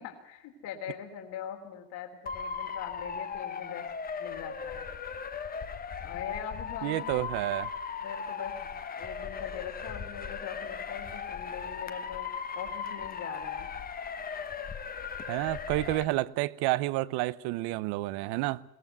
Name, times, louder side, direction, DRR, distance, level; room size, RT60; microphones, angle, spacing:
voice 1, 0.0-3.8 4.2-4.9 6.0-7.2 8.0-8.7 9.0-12.3 12.6-13.7, left 9 dB, 55° left, 3.4 m, -42 dB
Motor vehicle (road) / Siren, 2.3-16.0, left 6 dB, 20° left, 1.1 m, -38 dB
voice 2, 6.8-7.7 15.3-18.6, right 18 dB, 55° right, 0.9 m, -30 dB
22.0 x 17.5 x 8.1 m
supercardioid pair, 120°, 47 cm